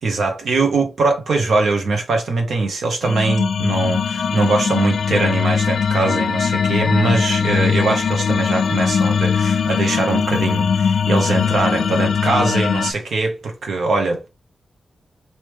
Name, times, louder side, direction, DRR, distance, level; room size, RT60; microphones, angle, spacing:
voice 1, 0.0-14.3, right 3 dB, 80° right, 1.2 m, -21 dB
sound 1, 3.0-12.9, left 6 dB, 80° left, 0.4 m, -20 dB
3.2 x 3.0 x 3.4 m
wide cardioid pair, 110°, 0 cm